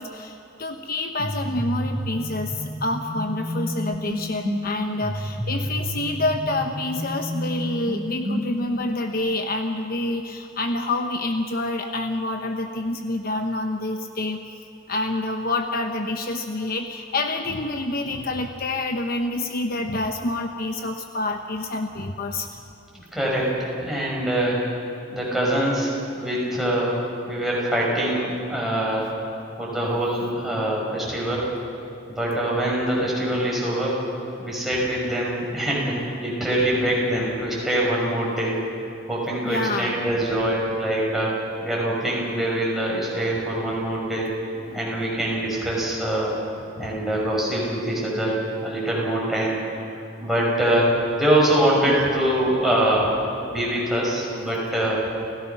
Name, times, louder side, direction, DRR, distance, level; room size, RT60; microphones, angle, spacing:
voice 1, 0.0-14.4 14.9-22.5 25.3-25.7 34.8-34.9 39.4-40.0 44.6-44.8 53.0-53.1 54.6-54.7, left 2 dB, 50° left, 5 dB, 1.0 m, -27 dB
sound 1, 1.2-8.8, equal, 20° right, 3.4 m, -30 dB
voice 2, 23.1-24.6 25.1-27.0 27.3-29.1 29.6-31.5 32.1-34.0 34.4-38.6 39.1-44.3 44.7-46.3 46.8-48.4 48.6-49.6 50.2-53.2 53.5-55.0, right 1 dB, ahead, -5 dB, 6.2 m, -24 dB
29.5 x 16.5 x 6.0 m, 2.9 s
head